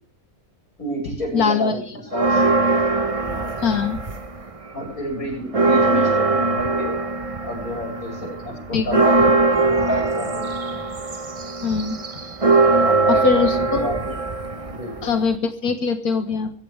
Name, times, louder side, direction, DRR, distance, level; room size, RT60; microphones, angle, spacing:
voice 1, 0.8-2.4 3.2-3.7 4.7-7.0 7.4-10.9 12.8-14.2 14.7-15.1, equal, 65° left, 1 dB, 8.6 m, -30 dB
voice 2, 1.3-1.7 3.6-4.0 8.7-9.0 11.6-12.0 13.2-13.9 15.0-16.5, left 5 dB, 85° left, 8 dB, 2.0 m, -22 dB
Bells Bong, 2.1-4.5 4.9-15.3, right 3 dB, 25° right, 1.0 m, -21 dB
23.5 x 15.5 x 3.5 m, 0.39 s
omnidirectional pair, 1.6 m